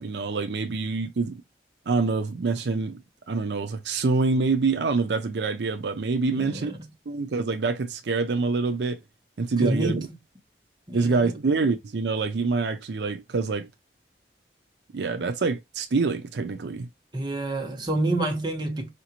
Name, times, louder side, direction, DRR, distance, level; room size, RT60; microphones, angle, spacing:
voice 1, 0.0-1.4 1.9-3.0 3.3-6.7 7.1-9.0 9.4-10.0 10.9-13.7 14.9-16.9, right 4 dB, 80° right, 0.5 m, -26 dB
voice 2, 6.3-6.9 9.6-10.0 10.9-11.2 17.1-18.9, right 2 dB, 25° right, 1.1 m, -28 dB
4.9 x 2.5 x 2.9 m
head